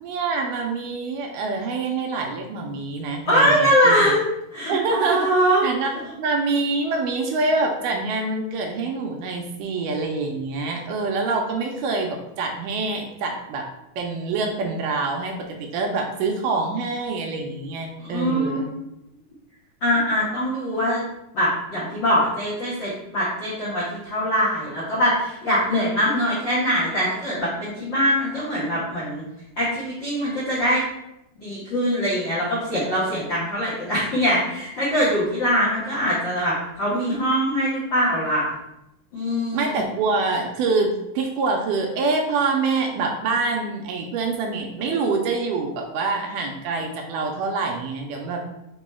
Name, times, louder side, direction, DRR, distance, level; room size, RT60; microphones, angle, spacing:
voice 1, 0.0-4.1 4.7-5.3 5.6-5.9 6.2-13.7 14.0-15.3 15.6-18.7 39.5-48.4, right 3 dB, 80° right, 2 dB, 2.0 m, -25 dB
voice 2, 3.3-4.2 4.5-5.6 18.0-18.9 19.8-21.0 21.3-29.2 29.6-30.8 31.4-38.5 39.1-39.9, equal, 70° left, -9 dB, 1.1 m, -22 dB
5.2 x 2.3 x 4.1 m, 0.88 s
omnidirectional pair, 4.0 m